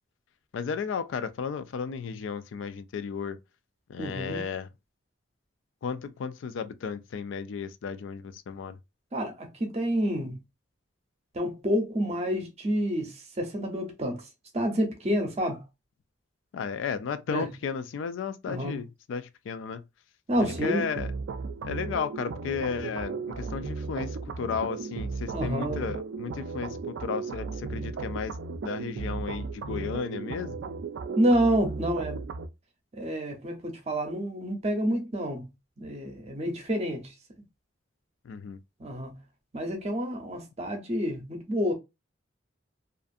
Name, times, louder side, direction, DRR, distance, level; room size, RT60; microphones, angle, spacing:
voice 1, 0.5-3.4 3.9-4.7 5.8-8.8 16.5-19.8 20.6-21.1 21.6-28.4 28.6-30.6 38.2-38.6, left 6 dB, 80° left, 0.3 m, -34 dB
voice 2, 4.0-4.4 9.1-10.4 11.3-14.2 14.5-15.6 17.3-17.5 18.5-18.8 20.3-20.8 25.3-25.9 31.2-32.2 33.0-35.4 35.8-37.1 38.8-39.1 39.5-41.7, equal, 30° right, 0.6 m, -28 dB
sound 1, 20.4-32.5, right 4 dB, 75° right, 0.3 m, -35 dB
2.5 x 2.4 x 2.5 m
head